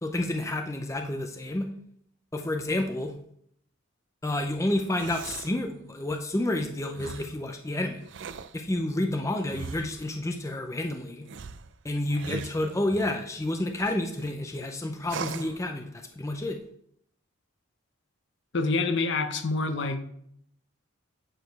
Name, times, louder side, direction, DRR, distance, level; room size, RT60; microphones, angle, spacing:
voice 1, 0.0-1.7 2.3-3.1 4.2-8.0 8.5-11.3 11.8-16.6, left 1 dB, 15° left, 4 dB, 0.5 m, -30 dB
sound 1, 4.7-5.6 6.9-7.4 8.0-8.6 9.5-10.1 11.2-13.2 13.8-14.3 15.0-15.6, right 5 dB, 55° right, 0.4 m, -40 dB
voice 2, 18.5-20.0, left 3 dB, 55° left, 8 dB, 0.8 m, -26 dB
8.9 x 5.0 x 4.6 m, 0.68 s
head